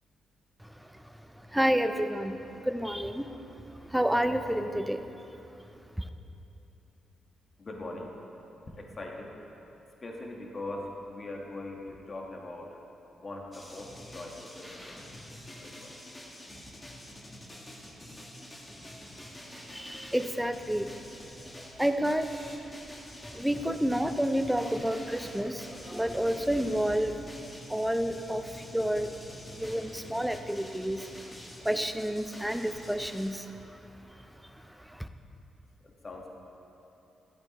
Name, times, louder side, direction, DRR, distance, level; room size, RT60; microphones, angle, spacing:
voice 1, 1.5-2.4 2.7-3.3 3.9-5.0 19.7-20.9 21.8-22.3 23.3-27.1 27.7-29.1 29.5-31.0 31.6-33.5, equal, 5° right, 9 dB, 0.5 m, -29 dB
voice 2, 7.6-8.1 8.7-9.3 10.0-12.8 13.2-15.0 15.6-15.9 35.8-36.3, left 2 dB, 35° left, 0 dB, 1.3 m, -41 dB
sound 1, 13.5-33.4, left 1 dB, 20° left, 1.4 m, -47 dB
12.5 x 8.6 x 2.9 m, 3.0 s
cardioid pair, 75°, 0 cm